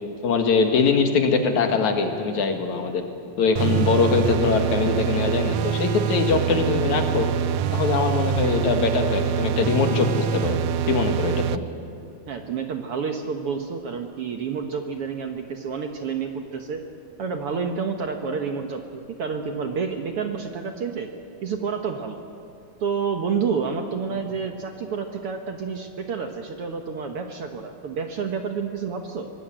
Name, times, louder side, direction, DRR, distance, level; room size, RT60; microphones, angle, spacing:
voice 1, 0.2-3.0 3.4-7.3 7.7-10.6 10.9-11.6, left 4 dB, 70° left, 5 dB, 3.1 m, -22 dB
sound 1, 3.6-11.6, right 9 dB, 80° right, 1.4 m, -25 dB
voice 2, 12.3-16.8 17.2-21.1 21.4-22.2 22.8-29.3, right 5 dB, 60° right, 4 dB, 1.7 m, -29 dB
24.5 x 19.0 x 8.9 m, 2.5 s
omnidirectional pair, 3.6 m